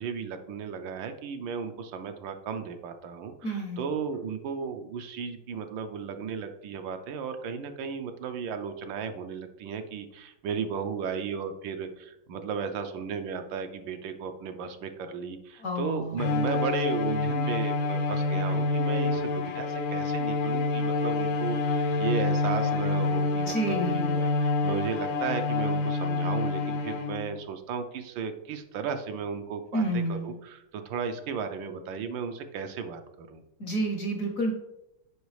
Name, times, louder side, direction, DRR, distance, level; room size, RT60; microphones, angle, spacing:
voice 1, 0.0-33.4, right 6 dB, 75° right, 7 dB, 1.3 m, -35 dB
voice 2, 3.4-3.9 15.6-16.2 23.3-24.2 29.7-30.4 33.6-34.5, right 1 dB, 60° left, 3 dB, 0.9 m, -29 dB
Bowed string instrument, 16.2-27.4, left 3 dB, 85° left, 1.5 m, -27 dB
8.1 x 5.3 x 3.2 m, 0.87 s
omnidirectional pair, 2.2 m